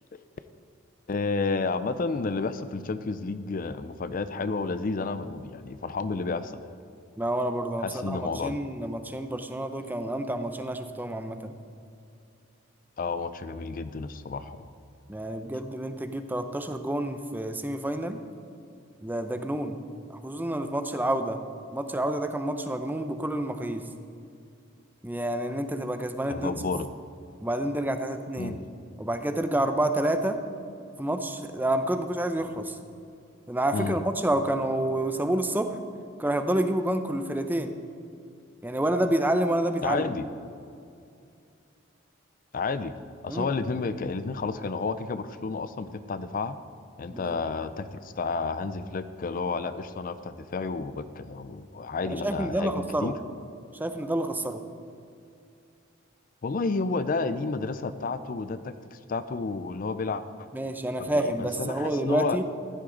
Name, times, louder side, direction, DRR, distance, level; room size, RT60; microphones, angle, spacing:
voice 1, 1.1-6.8 7.8-8.6 13.0-14.7 26.3-26.9 28.4-28.6 33.7-34.0 39.8-40.2 42.5-42.9 43.2-46.6 47.0-53.1 56.4-60.5 61.0-62.4, left 4 dB, 45° left, 12 dB, 0.4 m, -31 dB
voice 2, 7.2-11.5 15.1-18.2 19.0-19.8 20.1-21.4 21.7-23.8 25.0-26.5 27.4-28.6 29.0-30.4 31.0-32.8 33.5-35.8 36.2-37.7 38.6-40.1 43.3-43.5 47.1-47.4 52.1-53.1 53.8-54.6 60.5-62.4, right 1 dB, 10° right, 8 dB, 0.6 m, -28 dB
15.0 x 11.5 x 3.9 m, 2.5 s
head